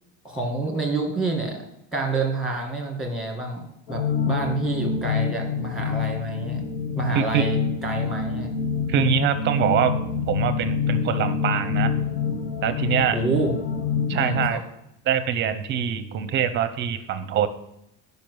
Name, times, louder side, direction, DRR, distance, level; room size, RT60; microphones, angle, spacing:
voice 1, 0.2-1.7 1.9-6.6 6.9-8.5 13.1-13.5 14.1-14.6, right 3 dB, ahead, 1 dB, 1.6 m, -28 dB
sound 1, 3.9-14.5, left 6 dB, 80° left, 1.1 m, -26 dB
voice 2, 8.9-9.9 10.3-11.9 12.6-13.2 14.1-14.6 15.1-17.5, right 9 dB, 30° right, 11 dB, 0.6 m, -24 dB
10.5 x 5.4 x 6.2 m, 0.81 s
cardioid pair, 175°, 39 cm